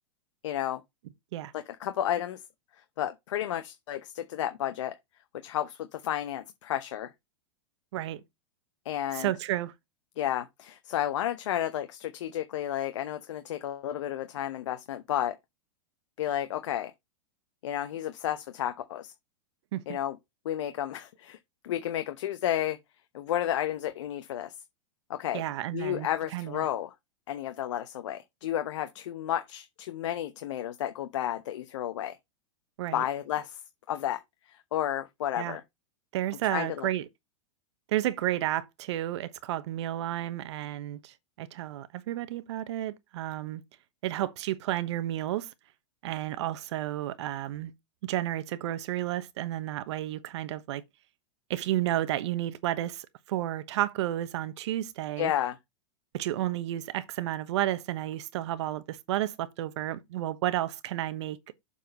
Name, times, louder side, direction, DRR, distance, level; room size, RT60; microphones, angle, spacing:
voice 1, 0.4-0.8 1.5-2.4 3.0-4.9 5.4-7.1 8.8-9.3 10.2-15.4 16.2-16.9 17.6-19.1 19.9-20.2 20.4-21.4 21.6-22.8 23.1-24.5 25.1-25.4 25.7-26.9 27.3-32.2 32.9-33.6 33.9-34.2 34.5-35.6 36.5-36.9 55.2-55.6, left 11 dB, 75° left, 1.0 m, -32 dB
voice 2, 7.9-8.2 9.1-9.7 19.7-20.0 25.3-26.7 32.8-33.0 35.4-35.6 36.1-37.0 37.9-43.6 44.0-45.5 46.0-47.7 48.0-50.8 51.5-55.3 56.1-61.4, right 14 dB, 65° right, 1.1 m, -32 dB
7.4 x 4.3 x 5.4 m
supercardioid pair, 145°, 16 cm